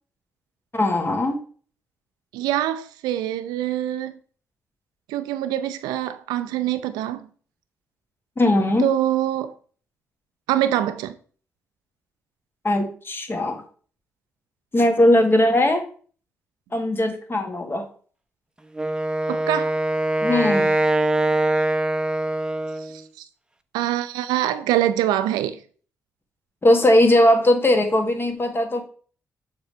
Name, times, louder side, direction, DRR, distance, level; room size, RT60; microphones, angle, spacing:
voice 1, 0.7-1.4 8.4-8.9 12.6-13.6 14.7-15.8 16.7-17.8 20.2-20.7 26.6-28.8, left 1 dB, 30° left, 1.6 m, -19 dB
voice 2, 2.3-4.1 5.1-7.3 8.8-9.5 10.5-11.2 19.3-19.7 22.8-23.2 23.7-25.6, right 12 dB, 80° right, 0.4 m, -24 dB
Wind instrument woodwind instrument, 18.7-23.0, right 1 dB, 10° right, 0.7 m, -23 dB
6.7 x 3.4 x 4.3 m
hypercardioid pair, 45°, 7 cm